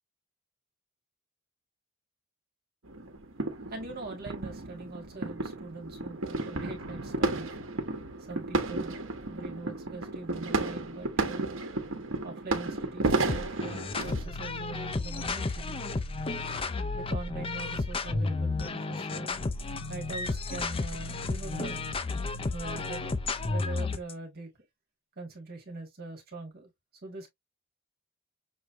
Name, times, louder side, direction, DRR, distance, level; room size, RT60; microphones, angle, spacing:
sound 1, 2.9-14.3, right 2 dB, 65° right, 1.2 m, -33 dB
voice 1, 3.7-7.5 8.2-11.5 12.2-15.9 17.0-19.4 19.9-21.8 22.5-23.1 23.5-24.5 25.2-26.7 27.0-27.3, right 3 dB, 50° right, 1.7 m, -42 dB
sound 2, 13.3-24.1, left 3 dB, 25° left, 0.5 m, -32 dB
Drum, 18.1-21.1, equal, 75° left, 1.6 m, -51 dB
6.3 x 3.1 x 2.5 m
head